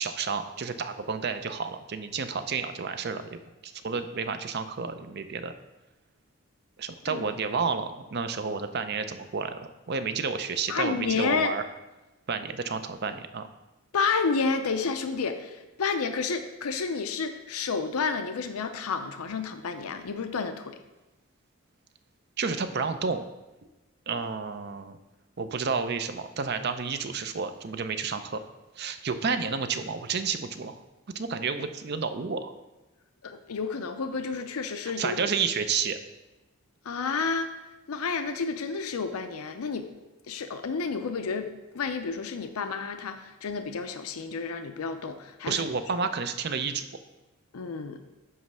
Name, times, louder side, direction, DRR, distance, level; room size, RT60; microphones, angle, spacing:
voice 1, 0.0-3.3 3.6-5.5 6.8-11.6 12.3-13.5 22.4-23.2 24.1-25.0 25.4-28.4 28.8-30.8 31.1-32.5 35.0-36.0 45.5-46.8, right 5 dB, 50° right, 9 dB, 0.5 m, -30 dB
voice 2, 10.7-11.5 13.9-20.8 33.2-35.2 36.8-37.5 37.9-39.9 40.3-41.5 41.7-45.6 47.5-48.0, left 5 dB, 80° left, 8 dB, 0.5 m, -30 dB
9.5 x 3.2 x 6.0 m, 1.0 s
head